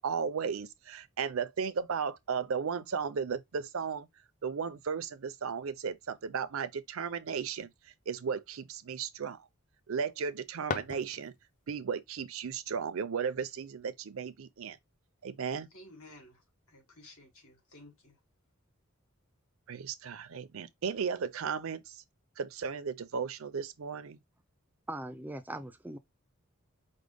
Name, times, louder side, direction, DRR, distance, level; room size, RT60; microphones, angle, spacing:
voice 1, 0.0-4.1 4.4-7.7 8.1-9.4 9.9-11.3 11.7-14.8 15.2-15.7 19.7-22.0 22.4-24.2, right 6 dB, 70° right, 0.5 m, -35 dB
sound 1, 10.2-11.7, left 4 dB, 40° left, 0.6 m, -39 dB
voice 2, 15.7-18.2, left 1 dB, 75° left, 2.1 m, -54 dB
voice 3, 24.9-26.0, right 1 dB, 10° right, 0.4 m, -40 dB
5.0 x 2.1 x 3.4 m
head